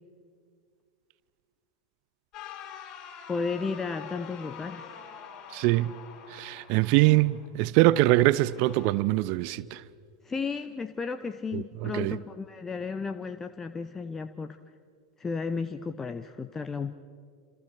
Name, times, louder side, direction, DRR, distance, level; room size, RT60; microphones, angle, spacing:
sound 1, 2.3-7.5 8.3-8.9, left 8 dB, 35° left, 5.3 m, -45 dB
voice 1, 3.3-5.0 10.2-14.6 15.2-16.9, left 4 dB, 15° left, 0.9 m, -33 dB
voice 2, 5.5-5.9 6.3-9.8 11.5-12.2, right 17 dB, 45° right, 0.6 m, -23 dB
29.0 x 27.5 x 6.0 m
figure-of-eight pair, 85°, 2 cm